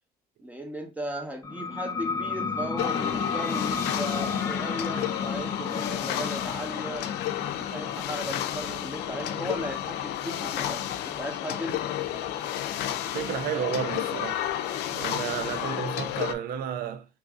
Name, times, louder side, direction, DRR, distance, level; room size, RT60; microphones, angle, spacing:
voice 1, 0.4-7.1 7.6-12.4, equal, 10° right, 0.9 m, -37 dB
sound 1, 1.4-12.7, left 5 dB, 20° left, 0.5 m, -34 dB
sound 2, 2.8-16.3, left 11 dB, 85° left, 0.4 m, -32 dB
voice 2, 13.1-14.4 14.9-17.1, right 8 dB, 60° right, 0.5 m, -32 dB
3.0 x 2.6 x 3.5 m
cardioid pair, 110°, 17 cm